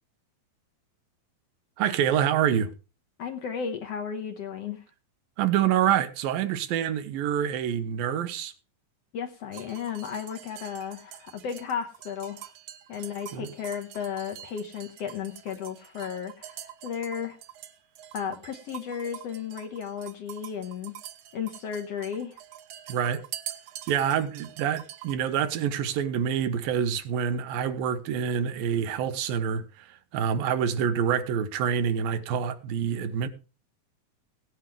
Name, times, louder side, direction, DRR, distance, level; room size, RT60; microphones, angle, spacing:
voice 1, 1.8-2.7 5.4-8.5 13.3-13.5 22.9-23.2 23.9-33.3, right 8 dB, 85° right, 2.9 m, -26 dB
voice 2, 3.2-4.8 9.1-12.5 12.9-17.4 18.1-20.9 21.3-22.4, left 7 dB, 60° left, 1.7 m, -34 dB
sound 1, 9.5-25.2, right 11 dB, 70° right, 1.6 m, -45 dB
18.0 x 9.7 x 3.3 m
omnidirectional pair, 4.0 m